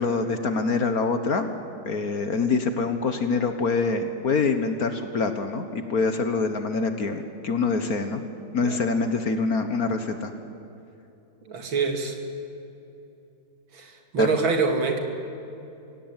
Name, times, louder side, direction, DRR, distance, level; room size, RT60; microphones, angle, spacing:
voice 1, 0.0-1.5 1.8-8.2 8.5-10.3 14.2-14.3, left 4 dB, 50° left, 8 dB, 1.5 m, -25 dB
voice 2, 8.6-8.9 11.5-12.2 13.7-15.0, right 4 dB, 70° right, 4 dB, 3.2 m, -25 dB
24.5 x 17.0 x 9.0 m, 2.9 s
omnidirectional pair, 2.3 m